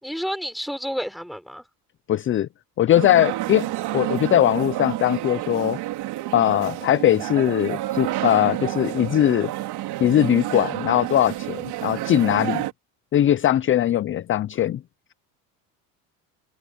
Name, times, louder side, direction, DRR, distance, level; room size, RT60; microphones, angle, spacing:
voice 1, 0.0-1.6, equal, ahead, 4.9 m, -30 dB
voice 2, 2.1-2.5 2.8-3.7 3.9-5.8 6.3-9.5 10.0-12.6 13.1-14.8, left 12 dB, 30° left, 0.5 m, -20 dB
sound 1, 2.9-12.7, right 16 dB, 65° right, 4.2 m, -29 dB
supercardioid pair, 105°, 42 cm